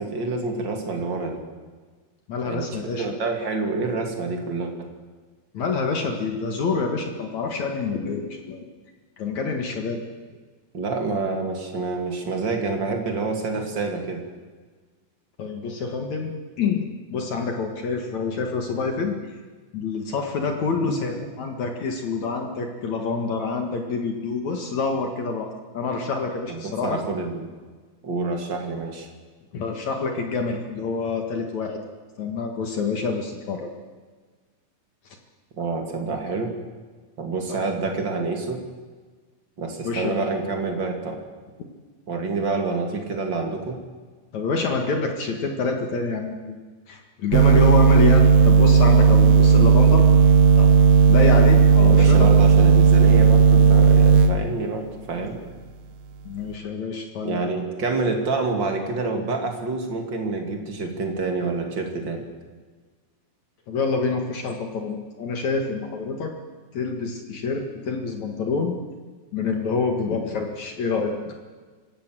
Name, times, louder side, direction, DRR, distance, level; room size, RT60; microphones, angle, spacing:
voice 1, 0.0-1.4 2.4-4.9 10.7-14.2 26.5-27.5 28.0-29.1 35.6-36.5 37.2-38.6 39.6-41.2 42.1-43.8 51.9-55.4 57.2-62.2, right 3 dB, 35° right, 3 dB, 2.4 m, -27 dB
voice 2, 2.3-3.1 5.5-8.6 9.2-10.0 15.4-19.2 19.7-27.0 29.5-31.8 32.2-33.7 37.5-37.6 39.8-40.2 44.3-46.6 46.9-50.1 50.6-50.7 51.1-52.3 56.2-57.4 63.7-66.3 66.7-68.8 69.3-71.3, left 4 dB, 55° left, 4 dB, 2.4 m, -27 dB
sound 1, 47.3-54.3, right 5 dB, 75° right, 3.1 m, -14 dB
26.0 x 16.5 x 7.7 m, 1.4 s
omnidirectional pair, 5.0 m